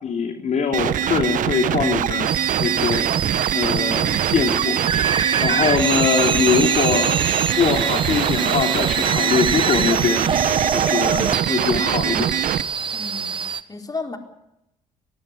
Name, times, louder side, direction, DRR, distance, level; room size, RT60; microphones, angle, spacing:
voice 1, 0.0-2.3 2.6-3.0 3.5-4.8 5.4-7.2 7.5-10.3 10.7-12.3, left 6 dB, 55° left, 4 dB, 3.0 m, -22 dB
sound 1, 0.7-12.6, right 11 dB, 65° right, 1.0 m, -23 dB
sound 2, 2.3-13.6, right 6 dB, 35° right, 1.4 m, -24 dB
voice 2, 12.9-14.2, left 3 dB, 25° left, 5 dB, 4.0 m, -33 dB
22.0 x 15.5 x 9.8 m, 0.84 s
supercardioid pair, 60°, 15 cm